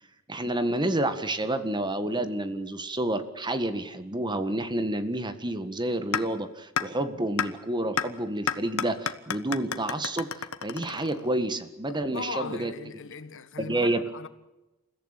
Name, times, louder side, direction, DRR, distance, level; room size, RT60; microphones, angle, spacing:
voice 1, 0.3-12.7 13.6-14.0, right 1 dB, 20° right, 1.6 m, -29 dB
sound 1, 6.1-6.2 6.8-6.9 7.4-7.5 8.0-8.1 8.5-11.4, left 7 dB, 85° left, 1.3 m, -29 dB
voice 2, 11.9-14.3, left 4 dB, 60° left, 1.4 m, -38 dB
28.5 x 15.0 x 9.0 m
head